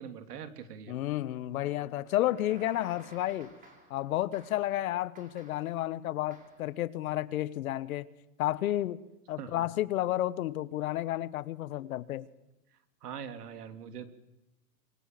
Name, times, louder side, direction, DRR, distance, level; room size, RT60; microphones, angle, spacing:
voice 1, 0.0-1.0 9.4-9.7 13.0-14.1, right 7 dB, 75° right, 3.1 m, -42 dB
voice 2, 0.9-3.5 3.9-8.1 8.4-9.0 9.3-12.3, left 14 dB, 60° left, 1.3 m, -31 dB
sound 1, 2.0-4.0 4.3-4.7 5.1-5.8 6.3-6.7, right 3 dB, 15° right, 5.5 m, -55 dB
26.5 x 23.0 x 7.8 m
hypercardioid pair, 145°, 47 cm